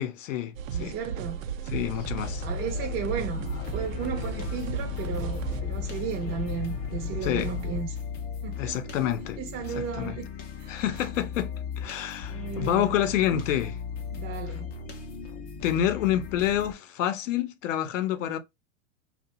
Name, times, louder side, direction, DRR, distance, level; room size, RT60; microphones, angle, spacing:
voice 1, 0.0-1.0 1.7-2.4 7.2-7.5 8.6-9.4 9.7-10.2 10.7-11.5 11.8-13.8 15.6-18.4, left 11 dB, 75° left, 0.6 m, -28 dB
sound 1, 0.5-5.6, right 8 dB, 85° right, 0.5 m, -35 dB
voice 2, 0.7-1.5 2.4-8.0 8.4-8.8 9.4-10.3 10.6-10.8 12.3-13.0 14.1-14.7, right 7 dB, 35° right, 0.5 m, -35 dB
sound 2, 1.9-7.8, left 6 dB, 45° left, 0.8 m, -35 dB
sound 3, 3.4-16.7, left 6 dB, 25° left, 0.4 m, -37 dB
2.7 x 2.2 x 2.9 m
hypercardioid pair, 120°, 39 cm